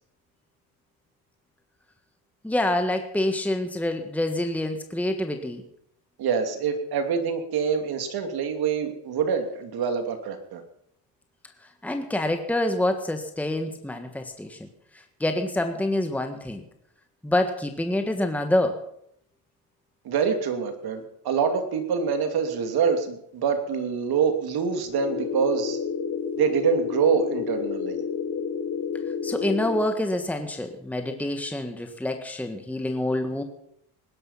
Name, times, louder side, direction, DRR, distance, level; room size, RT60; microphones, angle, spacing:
voice 1, 2.4-5.6 11.8-14.7 15.2-16.6 17.2-18.8 29.2-33.4, left 1 dB, 5° left, 6 dB, 1.5 m, -27 dB
voice 2, 6.2-10.6 20.0-25.8 26.4-28.0, right 6 dB, 65° right, 6 dB, 2.9 m, -25 dB
sound 1, 24.9-29.9, left 6 dB, 50° left, 2.6 m, -30 dB
19.5 x 11.0 x 5.7 m, 0.73 s
cardioid pair, 100°, 40 cm